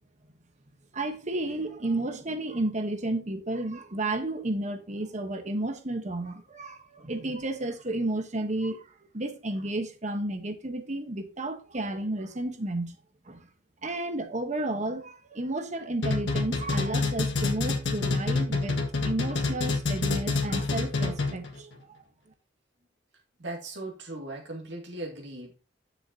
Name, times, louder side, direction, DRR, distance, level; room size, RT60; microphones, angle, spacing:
voice 1, 0.9-13.0 13.3-13.5 13.8-18.8 19.0-22.0, right 2 dB, 40° right, 1.1 m, -32 dB
sound 1, 16.0-21.5, left 3 dB, 80° left, 1.7 m, -27 dB
voice 2, 23.4-25.5, right 2 dB, 70° right, 2.3 m, -38 dB
10.0 x 6.8 x 2.8 m
head